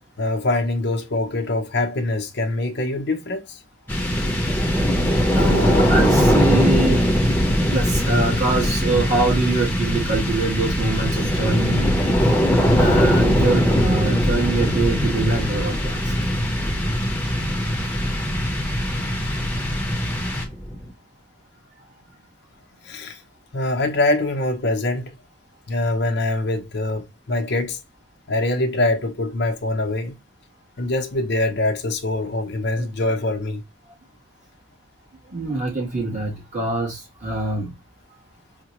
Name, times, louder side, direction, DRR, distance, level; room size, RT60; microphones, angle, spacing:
voice 1, 0.2-3.6 22.8-23.2 23.5-25.2 25.7-27.8 28.3-30.2 30.8-33.6, left 2 dB, 60° left, 0.8 m, -24 dB
sound 1, 3.9-20.8, equal, 10° left, 0.9 m, -20 dB
voice 2, 5.3-7.0 7.7-12.0 12.8-16.0 32.8-32.9 35.3-37.7, right 2 dB, 40° right, 1.5 m, -24 dB
4.9 x 2.2 x 2.9 m
head